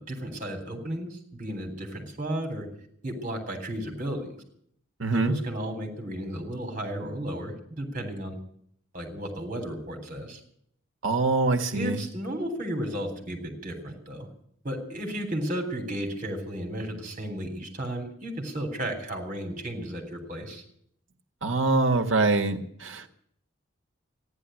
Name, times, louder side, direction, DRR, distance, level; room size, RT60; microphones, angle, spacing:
voice 1, 0.1-2.7 3.0-4.4 5.1-8.4 8.9-10.4 11.7-14.3 14.6-20.6, right 1 dB, 40° right, 4 dB, 3.7 m, -34 dB
voice 2, 5.0-5.3 11.0-12.0 21.4-23.0, right 3 dB, 80° right, 5 dB, 1.6 m, -24 dB
14.5 x 10.5 x 9.1 m, 0.67 s
head